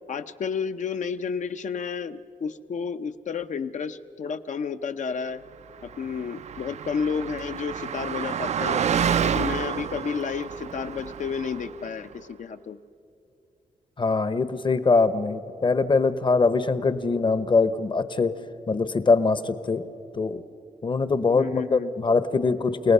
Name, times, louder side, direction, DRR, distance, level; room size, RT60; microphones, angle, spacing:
voice 1, 0.1-5.4 5.8-8.8 9.2-12.8 21.3-21.9, left 6 dB, 65° left, 9 dB, 0.8 m, -31 dB
Car passing by, 5.9-11.9, right 8 dB, 55° right, 0.4 m, -29 dB
voice 2, 14.0-18.3 18.7-19.8 20.1-20.4 20.8-22.9, left 4 dB, 35° left, 13 dB, 0.9 m, -22 dB
29.0 x 18.0 x 5.5 m, 2.7 s
cardioid pair, 85°, 14 cm